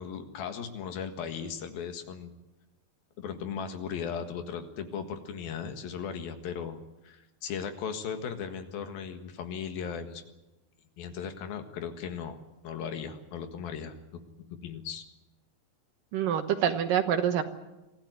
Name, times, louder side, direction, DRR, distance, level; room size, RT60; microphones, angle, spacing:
voice 1, 0.0-2.3 3.2-6.8 7.0-10.2 11.0-12.4 12.6-14.0 14.5-15.1, left 7 dB, 80° left, 7 dB, 3.5 m, -37 dB
voice 2, 16.1-17.4, right 9 dB, 70° right, 7 dB, 2.7 m, -26 dB
24.5 x 15.5 x 9.4 m, 1.0 s
omnidirectional pair, 4.2 m